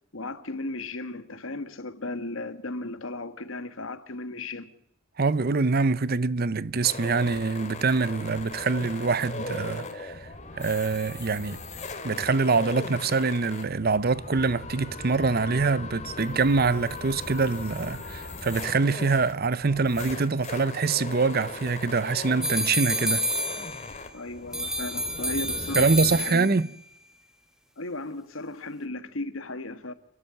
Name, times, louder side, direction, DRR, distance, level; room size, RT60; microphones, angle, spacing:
voice 1, 0.1-4.7 24.1-26.5 27.8-29.9, left 2 dB, 75° left, 1.6 m, -35 dB
voice 2, 5.2-10.1 10.6-11.6 12.0-23.2 25.8-26.7, right 4 dB, 50° right, 0.7 m, -25 dB
sound 1, 6.8-26.2, left 3 dB, 35° left, 2.6 m, -39 dB
sound 2, 22.4-24.1 24.5-26.7, equal, 5° right, 1.3 m, -29 dB
29.0 x 12.5 x 7.6 m
head